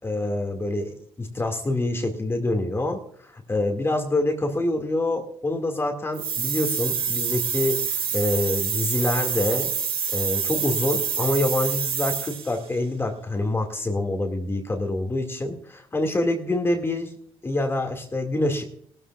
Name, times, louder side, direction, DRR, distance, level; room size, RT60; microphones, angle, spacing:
voice 1, 0.0-9.7 10.1-17.1 17.4-18.6, left 2 dB, 20° left, 3 dB, 2.1 m, -26 dB
sound 1, 6.1-12.6, right 7 dB, 55° right, 1.9 m, -27 dB
19.0 x 13.5 x 2.4 m, 0.63 s
cardioid pair, 80°, 11 cm